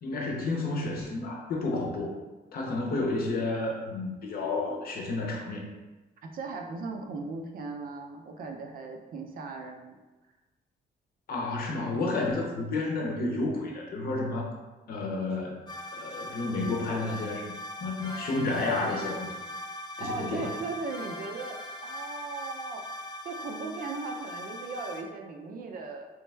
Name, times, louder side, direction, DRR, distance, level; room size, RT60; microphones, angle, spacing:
voice 1, 0.0-2.2 2.5-5.7 11.3-14.5 14.9-15.6 15.9-19.3 20.0-20.5, left 2 dB, 55° left, 0 dB, 0.7 m, -31 dB
voice 2, 6.2-10.0 20.0-22.8 23.2-26.1, right 3 dB, 55° right, 3 dB, 0.5 m, -38 dB
sound 1, 15.7-25.0, equal, 25° left, 0.4 m, -40 dB
3.4 x 3.2 x 3.3 m, 1.2 s
cardioid pair, 170°, 18 cm